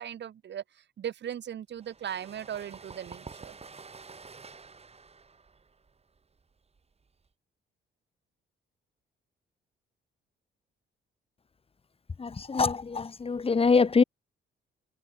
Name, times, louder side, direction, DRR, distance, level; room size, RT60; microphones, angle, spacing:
voice 1, 0.0-3.6, right 9 dB, 65° right, 3.8 m, -38 dB
sound 1, 1.8-7.3, right 4 dB, 30° right, 7.4 m, -49 dB
voice 2, 12.2-14.0, left 4 dB, 30° left, 1.9 m, -24 dB
cardioid pair, 90°, 20 cm